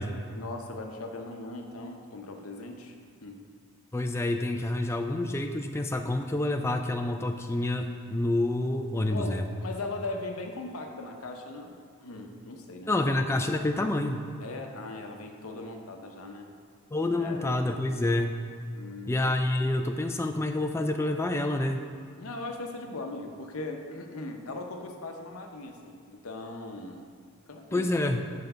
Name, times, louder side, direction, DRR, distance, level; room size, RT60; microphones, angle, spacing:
voice 1, 0.3-3.0 3.2-3.4 9.1-13.0 14.4-16.5 17.2-17.5 18.7-19.1 22.2-27.1 27.5-28.1, left 2 dB, 70° left, 3 dB, 0.8 m, -39 dB
voice 2, 3.9-9.4 12.9-14.3 16.9-18.4 19.1-21.9 27.7-28.2, left 1 dB, 10° left, 5 dB, 0.3 m, -28 dB
5.7 x 5.1 x 6.7 m, 2.2 s
head